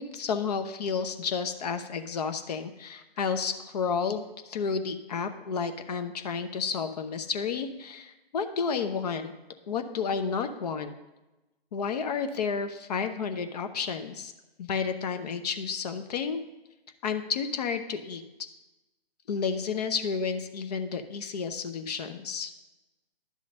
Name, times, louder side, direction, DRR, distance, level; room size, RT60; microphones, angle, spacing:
voice 1, 0.0-9.3 9.7-10.9 11.7-14.3 14.6-16.4 17.0-18.2 19.3-22.5, left 5 dB, 45° left, 8 dB, 0.7 m, -31 dB
10.5 x 3.8 x 6.4 m, 1.0 s
hypercardioid pair, 145°, 30 cm